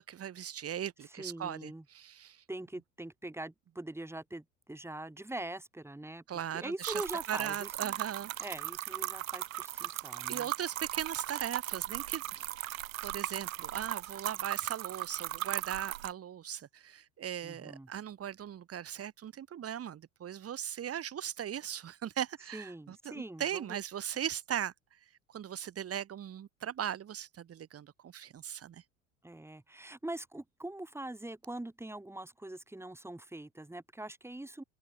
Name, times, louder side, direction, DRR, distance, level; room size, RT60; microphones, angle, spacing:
voice 1, 0.0-2.4 6.3-6.9 7.3-8.3 10.3-24.7 25.3-28.8, right 10 dB, 35° right, 3.4 m, -39 dB
voice 2, 1.1-1.8 2.5-6.2 6.5-8.0 8.4-10.5 17.4-17.9 22.5-23.7 29.2-34.6, right 1 dB, 5° right, 3.6 m, -43 dB
sound 1, 6.8-16.1, right 14 dB, 75° right, 1.1 m, -38 dB
open air
figure-of-eight pair, 70°, 40 cm